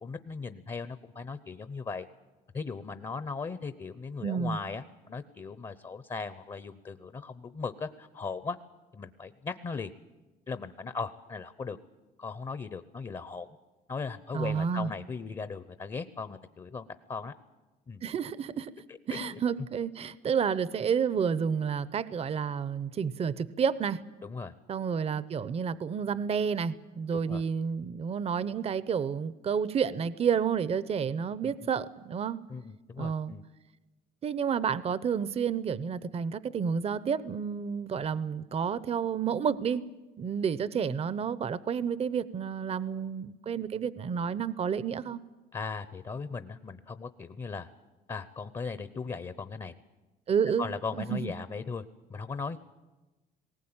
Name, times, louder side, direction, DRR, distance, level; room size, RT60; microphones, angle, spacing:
voice 1, 0.0-2.1 2.5-8.6 8.9-9.9 10.5-11.8 12.2-13.5 13.9-17.3 17.9-18.0 18.9-19.4 24.2-24.5 27.1-27.4 31.4-31.7 32.5-33.4 45.5-47.7 48.1-49.7 50.6-51.8 52.1-52.6, left 4 dB, 30° left, 12 dB, 0.8 m, -38 dB
voice 2, 4.2-4.6 14.3-14.9 18.0-18.7 19.1-24.0 24.7-32.4 33.0-33.3 34.2-39.8 40.2-45.2 50.3-50.7 51.0-51.2, right 7 dB, 35° right, 17 dB, 0.7 m, -30 dB
19.5 x 18.0 x 8.8 m, 1.2 s
cardioid pair, 110°, 17 cm